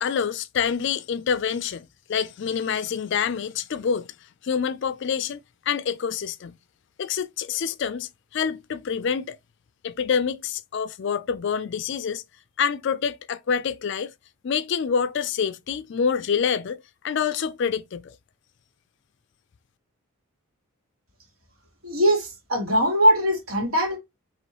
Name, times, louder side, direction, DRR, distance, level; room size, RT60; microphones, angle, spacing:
voice 1, 0.0-4.1 4.4-5.4 5.7-6.6 7.0-9.4 9.8-12.2 12.6-14.1 14.4-18.2, left 7 dB, 55° left, 0.3 m, -27 dB
voice 2, 21.8-24.0, equal, 70° right, 2.0 m, -21 dB
4.5 x 3.0 x 3.0 m
head